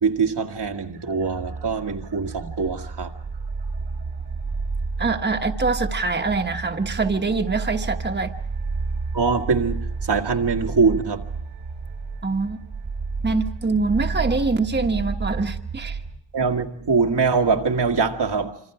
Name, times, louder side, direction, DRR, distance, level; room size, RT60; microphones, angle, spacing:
voice 1, 0.0-3.1 9.1-11.2 16.3-18.5, right 5 dB, 70° right, 1.8 m, -23 dB
sound 1, 0.6-16.2, right 4 dB, 85° right, 2.5 m, -31 dB
voice 2, 5.0-8.3 12.2-12.6 13.2-16.0, right 3 dB, 25° right, 1.3 m, -24 dB
26.0 x 25.5 x 4.9 m
wide cardioid pair, 80°, 42 cm